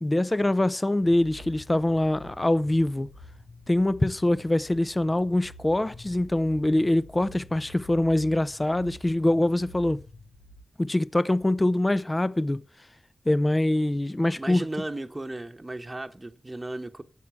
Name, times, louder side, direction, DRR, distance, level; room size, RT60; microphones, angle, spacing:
voice 1, 0.0-3.1 3.7-10.0 10.8-12.6 13.3-14.6, left 1 dB, 25° left, 0.6 m, -24 dB
sound 1, 1.0-10.6, left 1 dB, 80° left, 1.2 m, -48 dB
voice 2, 14.4-17.0, right 2 dB, 30° right, 1.1 m, -35 dB
8.3 x 7.3 x 7.2 m
cardioid pair, 45°, 0 cm